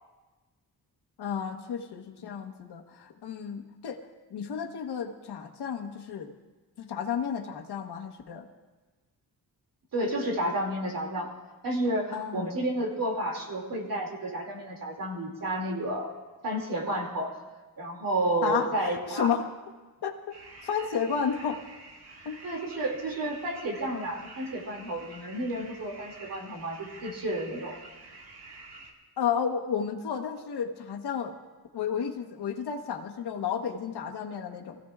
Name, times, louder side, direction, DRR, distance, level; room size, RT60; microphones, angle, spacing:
voice 1, 1.2-4.0 4.3-6.3 6.8-8.4 12.1-12.5 18.4-19.5 20.0-20.3 20.6-21.6 22.2-22.4 29.2-31.4 31.7-34.8, left 7 dB, 85° left, 4 dB, 1.2 m, -32 dB
voice 2, 9.9-11.3 11.6-16.1 16.4-17.3 17.8-19.3 22.4-27.8, right 1 dB, 60° right, 0 dB, 2.5 m, -31 dB
sound 1, 20.3-28.9, right 3 dB, 85° right, 1.8 m, -48 dB
22.5 x 15.5 x 2.4 m, 1.2 s
wide cardioid pair, 115°, 38 cm